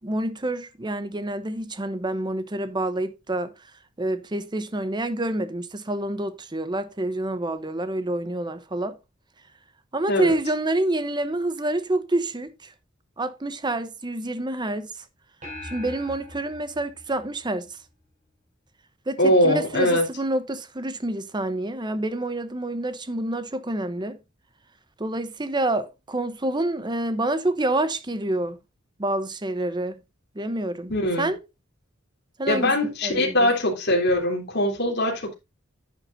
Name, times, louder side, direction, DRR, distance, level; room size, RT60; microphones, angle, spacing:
voice 1, 0.0-3.5 4.0-9.0 9.9-12.7 13.2-14.9 15.6-17.7 19.1-24.2 25.0-28.6 29.0-30.0 30.3-30.9 31.2-31.4 32.4-32.7 33.0-33.5, right 1 dB, 20° right, 0.9 m, -27 dB
sound 1, 15.4-18.1, left 1 dB, 40° right, 6.1 m, -42 dB
voice 2, 19.2-20.0 30.9-31.3 32.5-35.3, left 1 dB, 55° left, 3.4 m, -22 dB
10.0 x 9.7 x 2.7 m
head